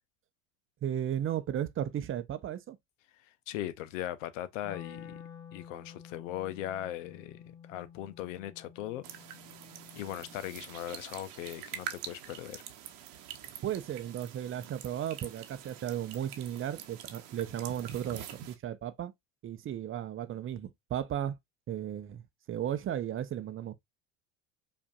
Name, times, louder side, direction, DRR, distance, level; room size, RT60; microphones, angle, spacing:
voice 1, 0.8-2.8 13.6-19.1 19.4-21.3 21.7-23.7, right 10 dB, 35° right, 0.6 m, -35 dB
voice 2, 3.2-5.2 5.5-9.1 9.9-12.6, left 12 dB, 80° left, 0.6 m, -39 dB
Wind instrument woodwind instrument, 4.6-10.7, left 7 dB, 45° left, 1.0 m, -50 dB
sound 1, 9.0-18.5, right 10 dB, 60° right, 0.9 m, -45 dB
5.0 x 2.6 x 2.4 m
hypercardioid pair, 85°, 38 cm